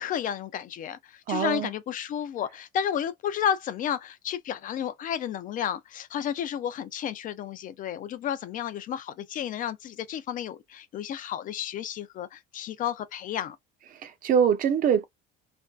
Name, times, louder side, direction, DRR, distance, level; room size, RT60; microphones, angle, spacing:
voice 1, 0.0-13.6, left 9 dB, 40° left, 0.4 m, -32 dB
voice 2, 1.3-1.7 14.0-15.0, right 8 dB, 40° right, 0.5 m, -23 dB
2.5 x 2.2 x 2.3 m
cardioid pair, 130°, 21 cm